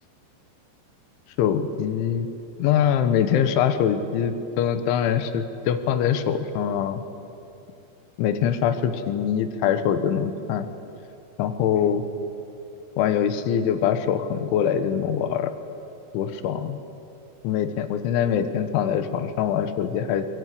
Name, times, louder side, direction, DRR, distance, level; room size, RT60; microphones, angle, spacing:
voice 1, 1.4-2.3 2.6-7.0 8.2-10.7 11.4-12.0 13.0-15.5 16.1-16.8 17.4-20.3, left 8 dB, 80° left, 10 dB, 3.6 m, -23 dB
23.0 x 22.5 x 9.7 m, 2.8 s
omnidirectional pair, 5.4 m